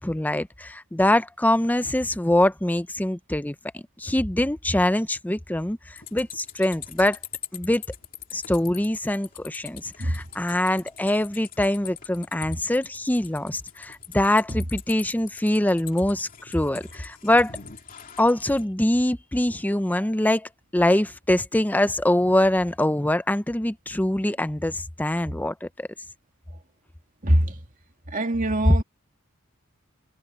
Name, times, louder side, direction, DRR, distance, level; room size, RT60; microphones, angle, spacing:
voice 1, 0.0-7.2 7.5-7.8 8.3-17.5 18.2-25.9, left 1 dB, 10° left, 0.6 m, -24 dB
sound 1, 6.0-18.6, left 9 dB, 40° left, 2.9 m, -43 dB
voice 2, 27.2-27.6 28.1-28.8, right 1 dB, 40° right, 2.5 m, -23 dB
head